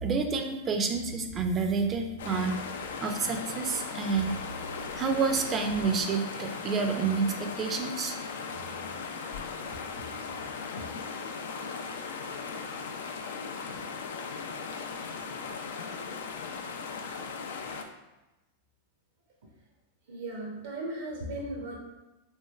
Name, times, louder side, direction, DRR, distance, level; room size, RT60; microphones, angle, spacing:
voice 1, 0.0-2.6 2.9-4.4 4.9-8.2, right 4 dB, 30° right, 5 dB, 0.4 m, -29 dB
sound 1, 2.2-17.8, left 5 dB, 80° left, 0.3 m, -38 dB
voice 2, 11.0-11.5 13.7-13.8 20.1-21.8, right 1 dB, 70° right, -1 dB, 0.6 m, -38 dB
3.1 x 2.9 x 2.3 m, 1.0 s
hypercardioid pair, 110°, 0 cm